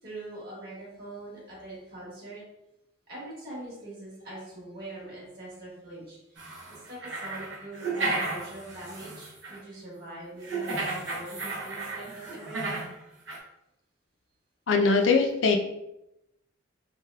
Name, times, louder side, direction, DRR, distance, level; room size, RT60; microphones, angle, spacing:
voice 1, 0.0-2.4 3.1-12.9, right 1 dB, 50° right, -6 dB, 1.4 m, -43 dB
sound 1, 6.4-9.6 10.4-12.9 13.3-13.4, right 3 dB, 65° right, 0.8 m, -33 dB
voice 2, 14.7-15.6, left 4 dB, 70° left, 5 dB, 0.4 m, -21 dB
3.3 x 2.7 x 2.2 m, 0.86 s
head